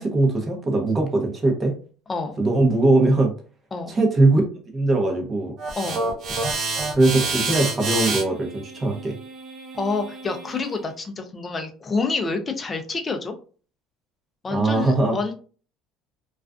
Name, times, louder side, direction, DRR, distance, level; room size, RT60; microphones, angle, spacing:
voice 1, 0.0-1.8 2.4-3.3 3.9-5.5 6.7-9.1 14.5-15.2, right 2 dB, 25° right, 2 dB, 0.8 m, -21 dB
sound 1, 5.6-10.8, right 3 dB, 55° right, 0.8 m, -28 dB
voice 2, 9.8-13.3 14.4-15.3, left 3 dB, 20° left, 5 dB, 0.5 m, -28 dB
2.4 x 2.3 x 2.3 m, 0.39 s
cardioid pair, 130°, 0 cm